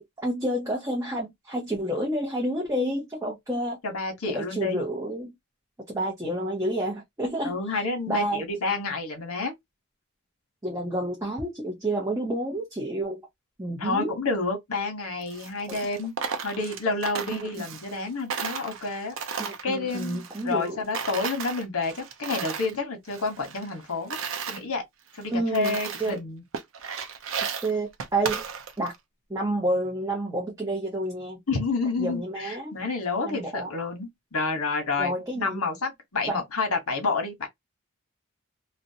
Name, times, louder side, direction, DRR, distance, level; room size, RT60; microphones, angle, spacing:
voice 1, 0.0-3.8 4.3-5.3 5.9-7.8 8.1-8.4 10.6-13.2 13.6-14.1 15.7-15.8 17.3-17.4 19.4-20.8 25.3-26.2 27.6-28.4 28.8-28.9 29.3-31.4 32.0-32.7 33.2-33.7 35.0-35.6 36.3-36.4, right 1 dB, 15° right, 0.6 m, -29 dB
voice 2, 3.8-4.8 7.4-9.5 13.8-16.1 16.4-19.1 19.6-24.2 24.5-24.8 25.1-26.4 31.5-37.5, left 3 dB, 90° left, 0.9 m, -29 dB
Coin (dropping), 15.2-18.0 18.3-20.7 20.9-22.8 23.1-24.6 25.1-25.2 25.5-26.2 26.5-29.0, right 6 dB, 70° right, 0.5 m, -35 dB
2.5 x 2.1 x 2.6 m
head